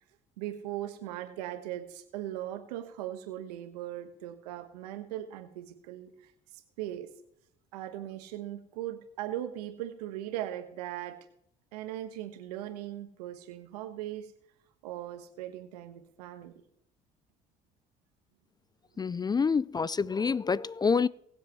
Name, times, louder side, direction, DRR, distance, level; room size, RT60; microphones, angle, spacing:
voice 1, 0.4-7.1 7.7-11.1 11.7-14.3 14.8-16.5, right 12 dB, 85° right, 1.3 m, -39 dB
voice 2, 19.0-21.1, left 5 dB, 20° left, 0.3 m, -27 dB
22.0 x 7.7 x 3.1 m
hypercardioid pair, 60°, 20 cm